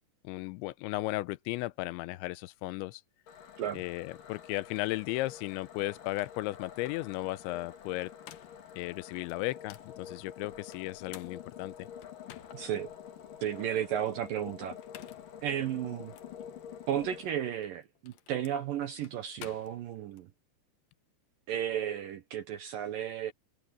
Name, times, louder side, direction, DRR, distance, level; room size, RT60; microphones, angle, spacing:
voice 1, 0.2-3.0 3.7-8.1 8.8-11.9, left 19 dB, 90° left, 2.9 m, -35 dB
sound 1, 3.3-17.3, left 9 dB, 50° left, 3.6 m, -48 dB
sound 2, 5.8-5.9 6.2-6.4 7.8-8.7 9.3-9.9 10.7-12.8 13.3-13.4 14.7-15.4 16.1-16.3 17.5-20.2, left 12 dB, 70° left, 2.2 m, -53 dB
voice 2, 12.5-12.9 13.4-14.8 15.4-16.1 16.9-20.3 21.5-23.3, right 10 dB, 75° right, 2.1 m, -33 dB
omnidirectional pair, 5.2 m